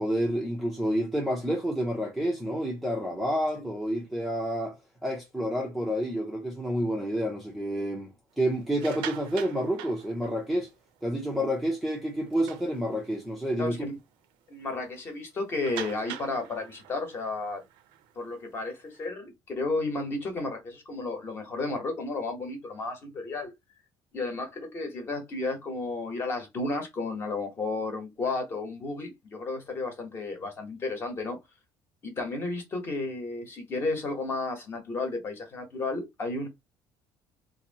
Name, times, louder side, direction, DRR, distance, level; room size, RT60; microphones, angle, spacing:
voice 1, 0.0-4.8 5.0-10.7 11.0-13.8, equal, ahead, 0.6 m, -29 dB
sound 1, 8.6-10.8 11.2-11.4 11.8-11.9 12.3-13.3 13.8-13.9 14.2-14.3 15.6-19.0, right 11 dB, 80° right, 0.6 m, -43 dB
voice 2, 13.6-14.0 14.5-17.6 18.1-23.5 24.1-31.4 32.0-36.5, left 3 dB, 30° left, 1.1 m, -33 dB
2.9 x 2.6 x 4.0 m
cardioid pair, 180°, 8 cm